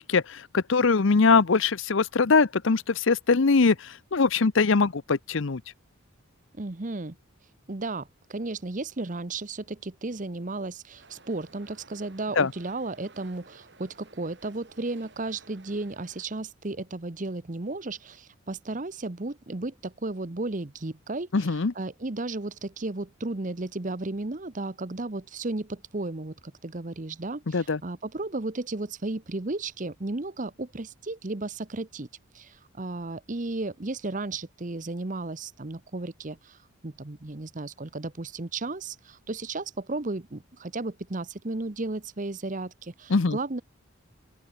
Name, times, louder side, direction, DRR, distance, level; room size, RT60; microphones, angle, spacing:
voice 1, 0.0-5.6 12.4-12.5 21.3-21.7 27.5-27.8 43.1-43.4, left 4 dB, 60° left, 0.7 m, -22 dB
voice 2, 6.5-7.2 7.7-32.1 32.3-36.6 36.8-43.6, right 2 dB, 35° right, 0.9 m, -34 dB
sound 1, 11.0-16.2, right 3 dB, 55° right, 7.4 m, -55 dB
open air
head